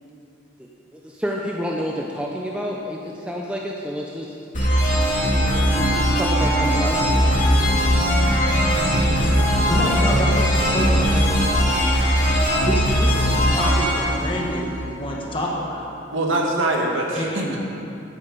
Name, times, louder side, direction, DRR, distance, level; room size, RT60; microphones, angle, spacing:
voice 1, 1.0-4.4 5.7-7.3, equal, 5° right, -2 dB, 0.6 m, -29 dB
sound 1, 4.5-15.1, equal, 40° left, 2.8 m, -19 dB
voice 2, 8.4-8.9 16.1-17.6, right 2 dB, 80° right, 0 dB, 1.7 m, -24 dB
voice 3, 9.4-11.5 12.6-16.0 17.1-17.6, equal, 25° left, -2 dB, 1.6 m, -28 dB
12.5 x 8.8 x 5.3 m, 2.7 s
head